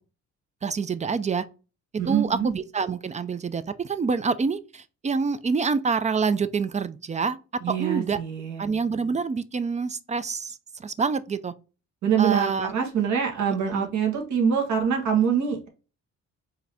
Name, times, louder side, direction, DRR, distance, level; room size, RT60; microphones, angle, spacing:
voice 1, 0.6-1.4 2.1-7.4 7.7-8.2 8.6-11.5 12.2-12.7 13.7-13.9, right 5 dB, 25° right, 0.3 m, -27 dB
voice 2, 2.0-2.5 7.6-8.6 12.0-15.7, right 7 dB, 70° right, 1.4 m, -24 dB
4.7 x 2.7 x 3.3 m
cardioid pair, 90°, 30 cm